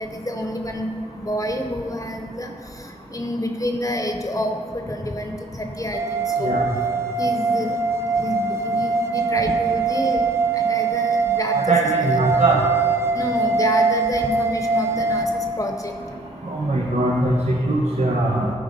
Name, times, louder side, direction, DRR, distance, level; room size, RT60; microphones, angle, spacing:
voice 1, 0.0-6.6 7.2-7.8 8.2-10.3 10.5-11.9 13.1-15.9, left 1 dB, 30° left, 3 dB, 0.7 m, -28 dB
sound 1, 5.9-15.3, right 4 dB, 25° right, 0.6 m, -22 dB
voice 2, 11.5-12.6 16.4-18.5, right 1 dB, 75° right, -2 dB, 0.8 m, -21 dB
11.5 x 4.9 x 5.3 m, 2.5 s
wide cardioid pair, 55°, 11 cm